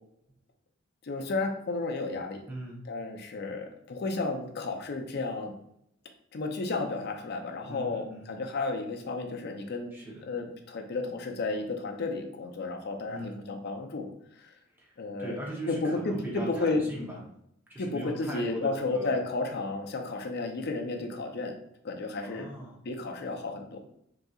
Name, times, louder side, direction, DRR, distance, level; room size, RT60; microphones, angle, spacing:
voice 1, 1.0-2.4 2.9-5.5 6.3-9.9 10.2-14.1 15.0-15.4 15.7-16.8 17.8-21.5 21.8-22.5 22.8-23.8, left 3 dB, 55° left, 4 dB, 0.5 m, -32 dB
voice 2, 2.5-2.8 7.7-8.3 9.9-10.2 13.1-13.4 14.8-17.2 17.7-19.2 22.2-22.8, equal, 10° right, -3 dB, 0.8 m, -40 dB
3.9 x 2.8 x 2.3 m, 0.75 s
head